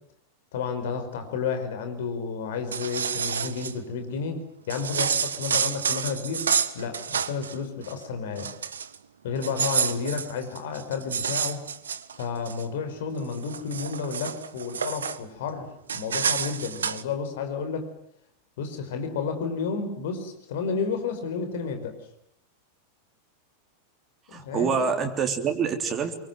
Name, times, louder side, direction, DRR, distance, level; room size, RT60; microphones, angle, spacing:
voice 1, 0.5-6.4 6.7-8.5 9.2-11.6 12.2-15.7 15.9-17.9 18.6-22.0 24.3-24.7, left 5 dB, 55° left, 8 dB, 4.9 m, -31 dB
sound 1, 2.5-3.7 4.7-7.5 7.8-8.0 8.4-9.0 9.4-12.6 13.1-15.2 15.9-17.0, right 7 dB, 70° right, 1.3 m, -29 dB
voice 2, 24.3-26.1, right 6 dB, 25° right, 4 dB, 3.4 m, -26 dB
26.5 x 24.0 x 9.3 m, 0.70 s
figure-of-eight pair, 90°, 0 cm